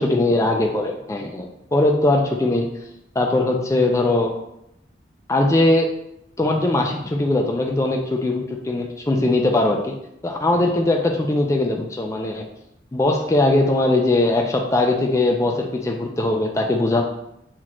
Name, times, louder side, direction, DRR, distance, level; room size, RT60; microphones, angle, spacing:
voice 1, 0.0-1.5 1.7-2.7 3.2-4.4 5.3-5.9 6.4-9.9 10.2-12.4 12.9-17.0, left 2 dB, 15° left, 1 dB, 0.4 m, -20 dB
5.8 x 2.4 x 3.0 m, 0.79 s
head